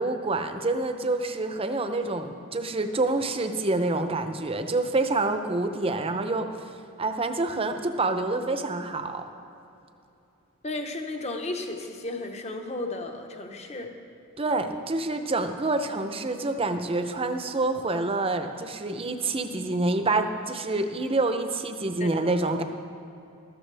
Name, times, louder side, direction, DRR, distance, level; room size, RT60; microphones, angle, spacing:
voice 1, 0.0-6.7 7.0-9.3 14.4-22.6, right 2 dB, 25° right, 8 dB, 0.6 m, -27 dB
voice 2, 10.6-13.9 22.0-22.6, left 2 dB, 30° left, 4 dB, 1.0 m, -34 dB
14.5 x 12.5 x 3.4 m, 2.8 s
head